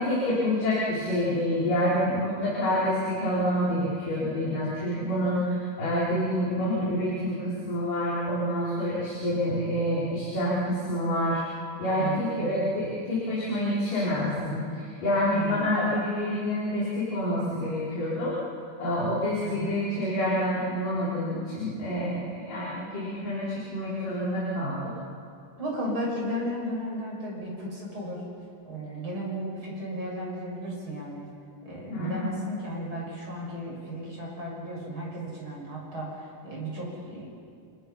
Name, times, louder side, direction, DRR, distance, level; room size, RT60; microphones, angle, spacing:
voice 1, 0.0-11.4 11.8-18.3 18.8-24.8 31.9-32.3, equal, 60° left, -8 dB, 6.2 m, -27 dB
voice 2, 11.9-12.7 15.3-15.8 19.4-19.8 25.6-28.3 28.7-31.3 31.6-37.3, equal, 30° right, -2 dB, 7.0 m, -34 dB
29.5 x 27.5 x 5.7 m, 2.3 s
omnidirectional pair, 4.4 m